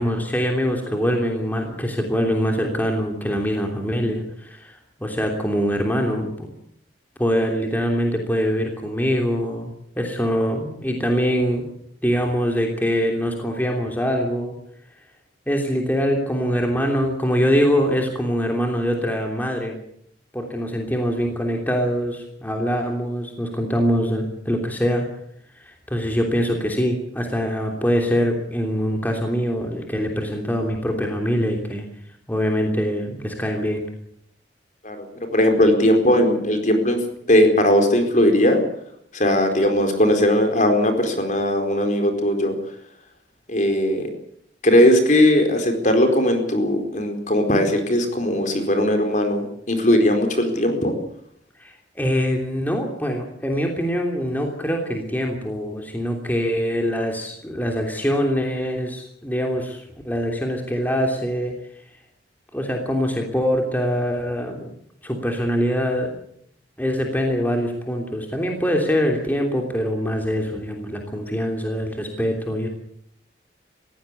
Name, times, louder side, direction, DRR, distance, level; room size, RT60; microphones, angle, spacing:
voice 1, 0.0-6.5 7.2-11.6 12.0-14.5 15.5-19.8 20.3-25.0 25.6-31.9 32.3-33.8 51.6-61.5 62.5-64.7 65.0-66.2 66.8-72.7, equal, 10° left, 2 dB, 3.1 m, -23 dB
voice 2, 35.3-37.0 37.3-38.6 39.1-42.6 43.5-44.1 44.6-50.9, left 1 dB, 45° left, 5 dB, 4.5 m, -18 dB
21.0 x 16.0 x 8.4 m, 0.69 s
head